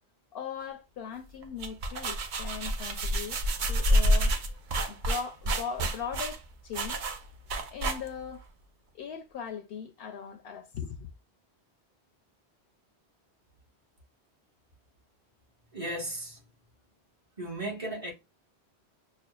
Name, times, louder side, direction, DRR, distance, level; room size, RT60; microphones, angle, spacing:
voice 1, 0.3-3.4 3.7-7.1 7.7-8.4 8.9-11.1, left 7 dB, 70° left, 0.7 m, -39 dB
sound 1, 1.4-8.4, equal, 55° right, 0.7 m, -28 dB
voice 2, 15.7-16.4 17.4-18.1, right 1 dB, 30° right, 1.4 m, -35 dB
6.2 x 2.3 x 2.3 m
omnidirectional pair, 1.1 m